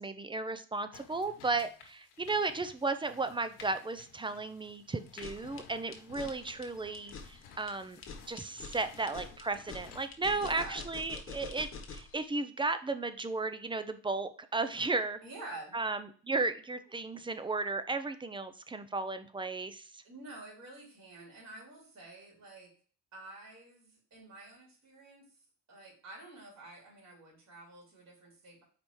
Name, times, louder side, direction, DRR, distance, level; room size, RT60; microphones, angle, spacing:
voice 1, 0.0-8.0 8.3-15.2 15.7-20.0, right 3 dB, 15° right, 11 dB, 0.5 m, -34 dB
sound 1, 0.9-10.1, left 6 dB, 85° left, 1.4 m, -55 dB
sound 2, 5.1-12.2, left 4 dB, 35° left, 1.2 m, -46 dB
voice 2, 10.3-10.8 15.2-15.8 20.0-22.7 23.1-25.3 25.7-28.6, right 2 dB, 45° right, -3 dB, 3.4 m, -49 dB
5.2 x 4.2 x 4.6 m, 0.42 s
supercardioid pair, 90°, 39 cm